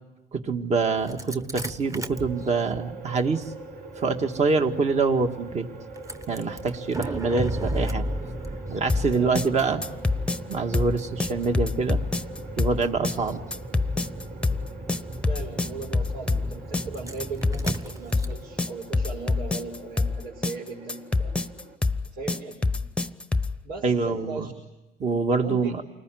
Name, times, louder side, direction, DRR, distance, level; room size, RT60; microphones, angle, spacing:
voice 1, 0.3-3.5 4.0-5.7 6.3-8.1 8.7-9.8 10.5-12.0 12.6-13.4 23.8-24.5 25.0-25.8, right 4 dB, 40° right, 5 dB, 1.9 m, -25 dB
Engine starting, 1.0-19.9, right 1 dB, 20° right, 1.2 m, -36 dB
sound 1, 2.1-21.8, right 2 dB, 60° right, 4.8 m, -44 dB
sound 2, 8.9-23.6, left 3 dB, 5° left, 0.9 m, -26 dB
voice 2, 15.3-21.3 22.0-22.8 23.6-24.5 25.4-25.8, right 4 dB, 80° right, -1 dB, 5.3 m, -38 dB
29.0 x 20.5 x 9.2 m, 1.0 s
cardioid pair, 110°, 17 cm